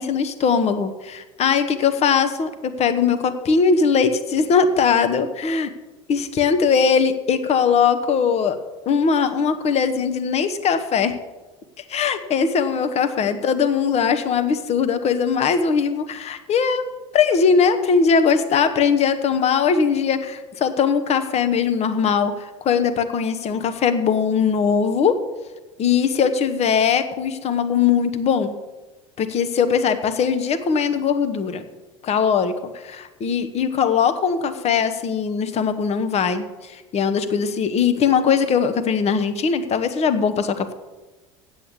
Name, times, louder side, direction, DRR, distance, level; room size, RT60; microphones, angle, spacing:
voice 1, 0.0-5.7 6.1-8.6 8.8-11.1 11.9-16.9 17.1-25.2 25.8-28.6 29.2-31.7 32.0-32.5 32.8-40.7, left 6 dB, 40° left, 10 dB, 1.2 m, -20 dB
8.6 x 7.7 x 8.3 m, 1.2 s
hypercardioid pair, 75°, 17 cm